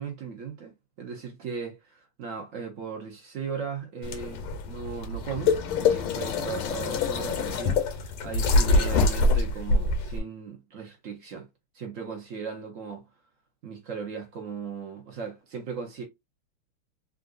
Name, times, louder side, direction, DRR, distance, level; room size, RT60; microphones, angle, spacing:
voice 1, 0.0-11.5 11.7-13.1 13.6-16.0, right 6 dB, 80° right, 0.7 m, -37 dB
sound 1, 4.0-10.2, left 3 dB, 85° left, 1.6 m, -25 dB
3.7 x 2.5 x 2.3 m
omnidirectional pair, 2.4 m